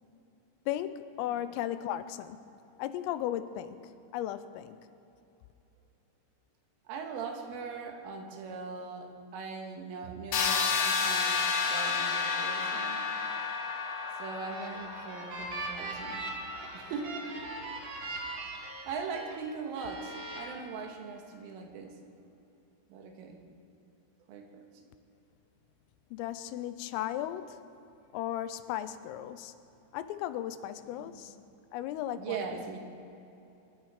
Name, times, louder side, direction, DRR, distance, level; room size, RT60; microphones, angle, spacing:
voice 1, 0.7-2.4 2.8-4.8 26.1-27.6 28.1-29.6 29.9-31.4 31.7-32.5, left 12 dB, 90° left, 12 dB, 3.4 m, -36 dB
voice 2, 6.9-13.0 14.2-16.3 16.7-17.2 18.6-22.0 22.9-23.4 24.3-24.7 31.0-31.3 32.1-32.8, right 5 dB, 80° right, 3 dB, 4.0 m, -40 dB
sound 1, 10.3-16.1, left 5 dB, 70° left, 2.6 m, -31 dB
sound 2, 14.3-19.4 19.8-20.4, right 2 dB, 45° right, 3.6 m, -40 dB
23.5 x 12.0 x 5.0 m, 2.9 s
omnidirectional pair, 5.8 m